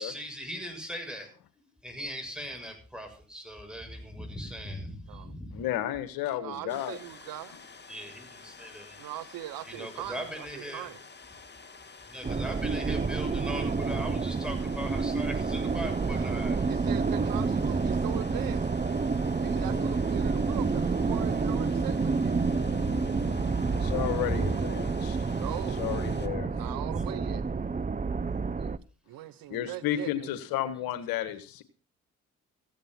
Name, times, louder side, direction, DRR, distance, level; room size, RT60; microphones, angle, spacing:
voice 1, 0.0-5.6 7.9-9.0 9.7-10.9 12.1-16.7 22.4-24.5 28.6-28.7, equal, ahead, 7.1 m, -39 dB
voice 2, 5.5-7.0 23.7-25.2 25.8-26.5 29.5-31.6, left 12 dB, 75° left, 1.4 m, -32 dB
voice 3, 6.4-7.6 9.0-11.0 16.7-18.7 19.3-22.4 25.3-25.8 26.5-27.4 29.1-30.4, right 14 dB, 70° right, 0.9 m, -41 dB
sound 1, 6.7-26.3, left 4 dB, 30° left, 2.1 m, -50 dB
sound 2, 12.2-28.8, right 4 dB, 20° right, 0.8 m, -29 dB
15.5 x 9.2 x 5.9 m
hypercardioid pair, 55°, 36 cm